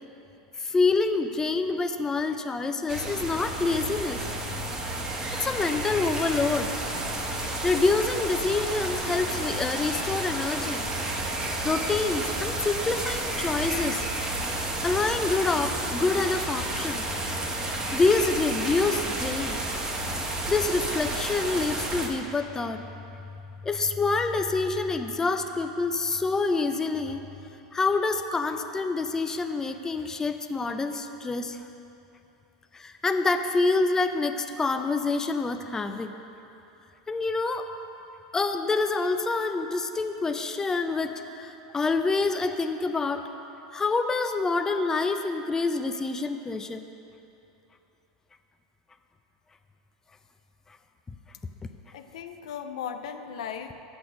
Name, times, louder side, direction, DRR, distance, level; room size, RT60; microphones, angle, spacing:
voice 1, 0.6-4.2 5.4-6.7 7.6-10.9 11.6-14.1 14.8-17.0 17.9-19.6 20.5-22.8 23.6-27.2 27.7-31.6 32.7-36.1 37.1-37.7 38.3-43.2 43.7-46.8, left 3 dB, 15° left, 7 dB, 0.4 m, -27 dB
sound 1, 2.9-22.1, right 1 dB, 20° right, 1.1 m, -31 dB
voice 2, 51.9-53.7, left 8 dB, 75° left, 7 dB, 0.5 m, -37 dB
6.8 x 6.1 x 6.4 m, 2.9 s
hypercardioid pair, 100°, 3 cm